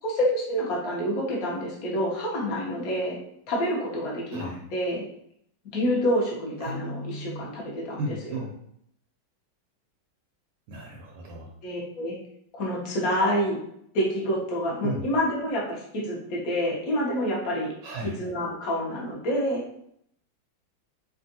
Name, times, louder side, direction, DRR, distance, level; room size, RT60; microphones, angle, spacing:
voice 1, 0.0-3.2 3.5-5.0 5.7-8.4 11.6-12.2 12.5-13.6 13.9-17.7 18.2-19.6, equal, 55° left, -4 dB, 1.1 m, -27 dB
voice 2, 6.6-7.5 8.0-8.5 10.7-11.5 14.8-15.1 17.8-18.2, right 1 dB, 75° right, -1 dB, 1.3 m, -35 dB
3.4 x 2.4 x 2.7 m, 0.71 s
omnidirectional pair, 2.3 m